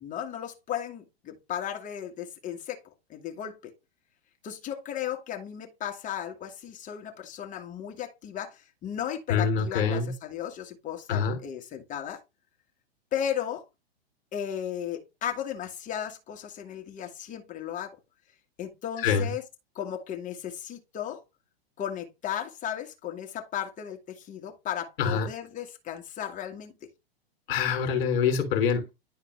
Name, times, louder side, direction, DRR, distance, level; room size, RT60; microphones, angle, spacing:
voice 1, 0.0-2.8 3.1-3.7 4.4-12.2 13.1-13.7 14.3-18.0 18.6-19.4 19.8-21.2 21.8-26.7, left 9 dB, 25° left, 1.7 m, -35 dB
voice 2, 9.3-10.1 11.1-11.4 19.0-19.3 25.0-25.3 27.5-28.9, left 6 dB, 55° left, 3.0 m, -25 dB
10.0 x 4.1 x 3.3 m
hypercardioid pair, 110°, 31 cm